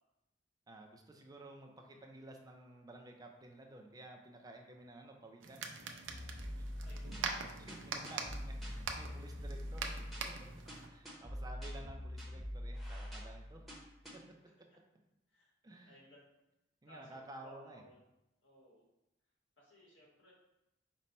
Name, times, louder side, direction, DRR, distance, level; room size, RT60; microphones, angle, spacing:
voice 1, 0.7-5.7 6.6-6.7 7.1-7.2 7.7-10.0 10.3-10.4 10.9-13.7 14.1-14.4 15.6-15.9 16.8-17.8, right 2 dB, 20° right, 2 dB, 0.4 m, -53 dB
sound 1, 5.4-10.9, right 5 dB, 85° right, 0.5 m, -44 dB
sound 2, 6.1-14.1, equal, ahead, 0.8 m, -45 dB
voice 2, 6.8-7.5 15.3-15.5 15.8-16.3 16.8-18.0 18.4-18.8 19.6-20.3, left 1 dB, 85° left, -4 dB, 1.5 m, -60 dB
5.2 x 2.2 x 4.2 m, 0.91 s
head